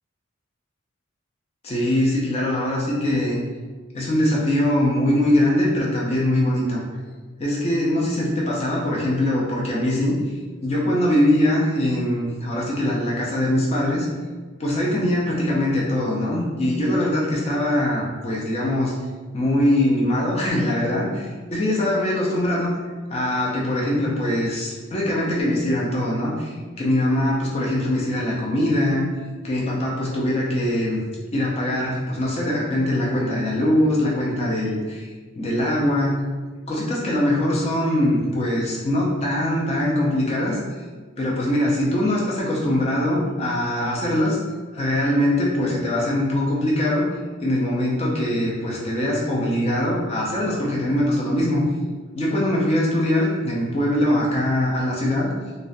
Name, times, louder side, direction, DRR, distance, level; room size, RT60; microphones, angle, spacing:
voice 1, 1.6-3.4 3.9-6.8 7.4-10.2 10.6-14.1 14.6-18.9 19.3-22.7 23.1-29.1 29.4-31.0 31.3-35.1 35.4-36.2 36.7-40.6 41.2-44.4 44.7-47.1 47.4-51.6 52.1-55.3, left 1 dB, 30° left, -4 dB, 0.4 m, -22 dB
2.4 x 2.1 x 2.5 m, 1.4 s
head